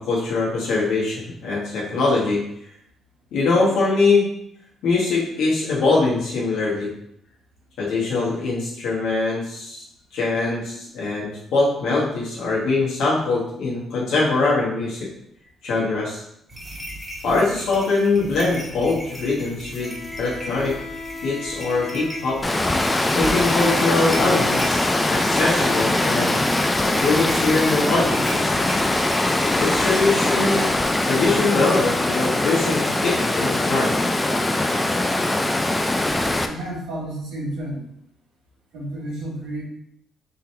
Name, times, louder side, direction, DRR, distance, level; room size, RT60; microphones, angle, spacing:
voice 1, 0.0-2.4 3.3-4.3 4.8-6.9 7.8-9.8 10.1-15.1 15.6-16.2 17.2-20.7 21.2-22.4 23.1-26.3 26.8-28.5 29.4-30.7 31.0-34.0, left 3 dB, 80° left, -6 dB, 1.3 m, -22 dB
sound 1, 16.5-30.3, right 1 dB, 10° right, 1.7 m, -37 dB
Bowed string instrument, 19.8-24.4, left 3 dB, 55° left, 0.7 m, -36 dB
Water, 22.4-36.5, left 2 dB, 15° left, 0.4 m, -22 dB
voice 2, 36.4-37.8 38.7-39.6, right 1 dB, 90° right, -4 dB, 1.5 m, -31 dB
3.9 x 2.7 x 4.4 m, 0.74 s
cardioid pair, 90°, 0 cm